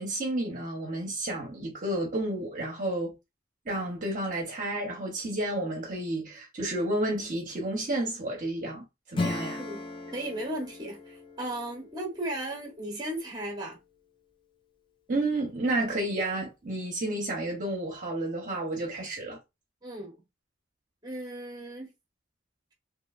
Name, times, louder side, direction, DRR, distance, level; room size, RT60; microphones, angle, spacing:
voice 1, 0.0-3.1 3.6-9.6 15.1-19.4, right 1 dB, 40° right, 0.8 m, -31 dB
Acoustic guitar / Strum, 9.1-13.4, left 3 dB, 25° left, 0.4 m, -37 dB
voice 2, 10.1-13.8 19.8-20.2 21.0-21.9, right 1 dB, 20° right, 1.0 m, -36 dB
3.0 x 2.8 x 2.4 m
head